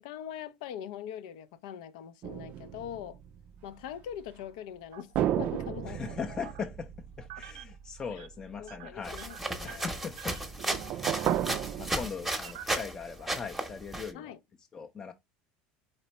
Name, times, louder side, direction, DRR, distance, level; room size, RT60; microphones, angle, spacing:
voice 1, 0.0-3.2 3.6-6.2 8.1-8.3 8.6-10.0 14.1-14.4, left 9 dB, 80° left, 0.6 m, -42 dB
sound 1, 2.2-4.0 5.1-9.3 10.4-11.9, right 11 dB, 40° right, 0.3 m, -34 dB
sound 2, 4.9-5.5 6.0-6.9 7.2-7.8 8.0-8.3 8.6-11.8 12.3-13.3, right 13 dB, 90° right, 0.6 m, -49 dB
voice 2, 5.9-6.9 7.2-9.2 9.6-10.4 10.9-11.5 11.8-14.4 14.7-15.1, left 5 dB, 20° left, 0.5 m, -40 dB
sound 3, 9.0-12.9 13.3-14.1, right 1 dB, 5° right, 0.9 m, -34 dB
4.4 x 3.9 x 3.0 m
cardioid pair, 155°, 4 cm